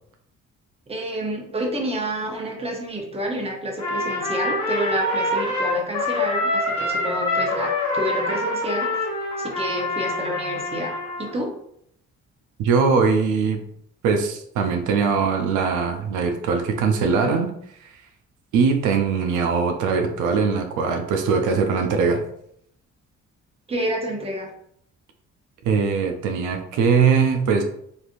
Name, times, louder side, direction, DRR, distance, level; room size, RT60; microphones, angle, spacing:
voice 1, 0.9-8.9 9.4-10.9 11.2-11.5 23.7-24.5, right 1 dB, 20° right, 0 dB, 0.8 m, -29 dB
Trumpet, 3.8-11.3, left 2 dB, 75° left, 1.2 m, -25 dB
voice 2, 12.6-13.6 14.0-17.5 17.8-17.9 18.5-22.2 25.6-27.6, right 5 dB, 85° right, 4 dB, 0.5 m, -21 dB
3.2 x 2.5 x 2.5 m, 0.71 s
cardioid pair, 90°, 30 cm